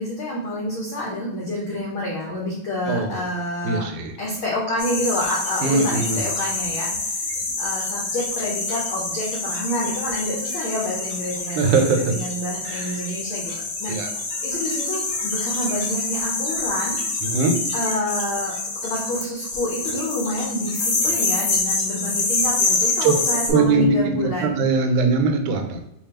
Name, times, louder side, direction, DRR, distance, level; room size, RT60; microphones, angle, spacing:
voice 1, 0.0-3.9 4.2-13.9 14.4-17.0 17.7-18.6 18.8-24.5, left 1 dB, 85° left, -3 dB, 1.1 m, -28 dB
voice 2, 2.9-3.2 3.6-4.1 5.6-6.2 11.6-12.2 12.7-13.0 13.9-14.1 17.3-17.6 23.0-23.1 23.5-25.8, right 4 dB, 90° right, 5 dB, 2.1 m, -21 dB
sound 1, 4.8-23.5, left 3 dB, 60° left, 2.7 m, -26 dB
6.9 x 2.4 x 2.8 m, 0.87 s
omnidirectional pair, 3.4 m